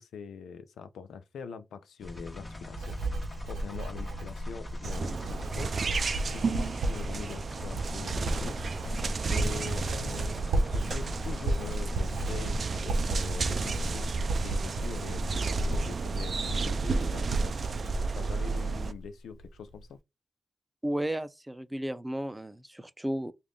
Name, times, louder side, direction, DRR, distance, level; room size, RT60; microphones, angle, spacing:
voice 1, 0.0-3.0 3.4-5.8 6.3-8.6 9.3-17.6 18.1-20.0, left 6 dB, 90° left, 0.4 m, -43 dB
sound 1, 2.0-12.6, left 2 dB, 30° left, 1.3 m, -44 dB
Writing, 2.0-19.1 19.4-19.8, right 1 dB, 90° right, 0.7 m, -34 dB
sound 2, 4.8-18.9, right 4 dB, 65° right, 0.4 m, -33 dB
voice 2, 20.8-23.3, right 1 dB, 15° right, 0.6 m, -33 dB
3.3 x 2.5 x 3.7 m
supercardioid pair, 40°, 0 cm